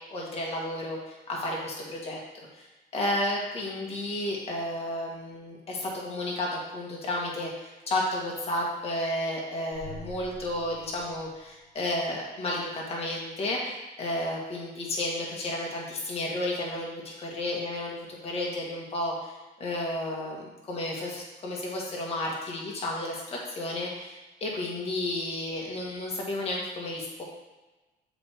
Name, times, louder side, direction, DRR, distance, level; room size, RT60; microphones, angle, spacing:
voice 1, 0.1-2.2 2.5-2.7 2.9-27.2, left 1 dB, 35° left, -3 dB, 1.6 m, -32 dB
sound 1, 9.7-12.0, left 1 dB, 85° left, 1.4 m, -46 dB
7.1 x 3.4 x 4.5 m, 1.1 s
cardioid pair, 110°, 17 cm